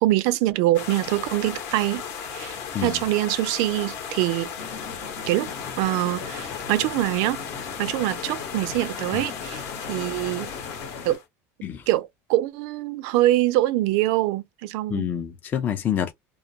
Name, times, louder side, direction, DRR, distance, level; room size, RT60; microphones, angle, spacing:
voice 1, 0.0-2.0 2.3-4.5 5.3-5.5 5.8-7.4 7.8-10.5 11.0-11.2 11.9-15.1, right 16 dB, 65° right, 0.3 m, -24 dB
sound 1, 0.7-11.2, left 7 dB, 55° left, 0.8 m, -36 dB
sound 2, 4.6-11.2, left 5 dB, 85° left, 1.1 m, -39 dB
voice 2, 14.9-16.1, left 9 dB, 25° left, 0.3 m, -27 dB
2.3 x 2.2 x 2.6 m
cardioid pair, 150°, 7 cm